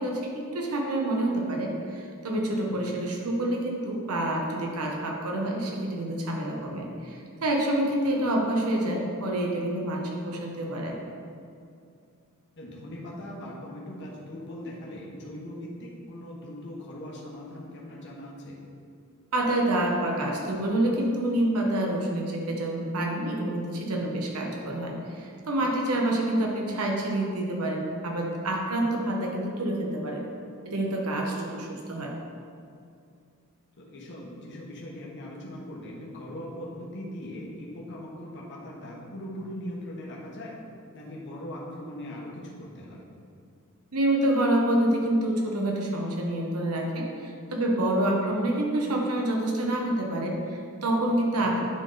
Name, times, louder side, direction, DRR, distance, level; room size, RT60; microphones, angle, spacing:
voice 1, 0.0-11.0 19.3-30.3 30.6-32.1 43.9-51.6, right 1 dB, 85° right, 0 dB, 1.0 m, -27 dB
voice 2, 2.6-3.0 12.6-18.6 26.1-26.2 33.8-40.6 40.9-43.0 51.3-51.6, left 1 dB, 55° left, -4 dB, 1.2 m, -40 dB
9.8 x 3.9 x 3.9 m, 2.4 s
head